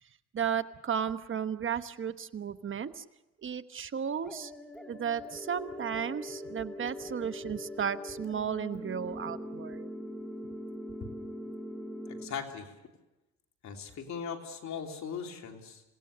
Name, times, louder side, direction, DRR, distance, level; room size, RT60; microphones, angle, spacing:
voice 1, 0.3-3.0 3.4-4.5 4.9-9.9, right 8 dB, 40° right, 11 dB, 1.1 m, -34 dB
sound 1, 4.2-12.2, left 1 dB, ahead, 3.1 m, -42 dB
voice 2, 12.1-12.7 13.6-15.8, left 6 dB, 65° left, 2 dB, 3.3 m, -39 dB
28.0 x 17.0 x 6.8 m, 1.0 s
cardioid pair, 90°, 30 cm